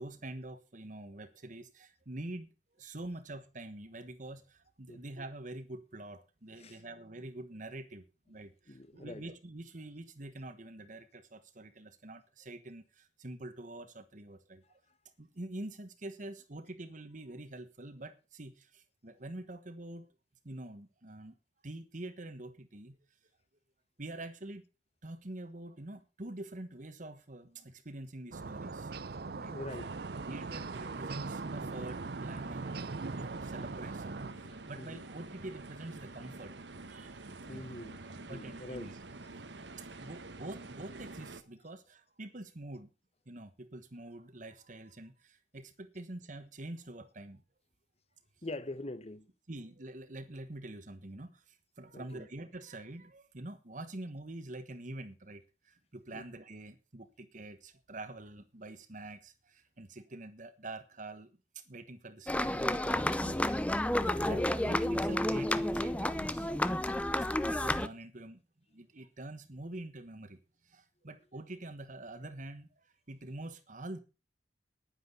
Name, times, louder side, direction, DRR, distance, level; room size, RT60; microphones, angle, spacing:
voice 1, 0.0-14.8 15.2-20.1 20.4-21.3 21.6-23.0 24.0-24.6 25.0-28.9 29.4-29.5 30.3-36.5 36.9-37.1 37.5-39.0 40.0-42.9 43.3-47.4 49.5-61.3 61.5-63.7 64.0-66.5 67.4-68.4 68.7-72.7 73.1-74.0, right 2 dB, 45° right, 1.3 m, -46 dB
voice 2, 8.7-9.3 29.3-30.0 34.2-35.1 37.5-39.0 48.4-49.3 51.9-52.3 56.1-56.2, left 2 dB, 35° left, 1.2 m, -45 dB
sound 1, 28.3-34.3, right 4 dB, 60° right, 0.6 m, -40 dB
sound 2, 29.7-41.4, right 2 dB, 85° right, 1.4 m, -47 dB
sound 3, 62.3-67.9, left 1 dB, 10° left, 0.6 m, -31 dB
10.5 x 9.8 x 6.9 m
head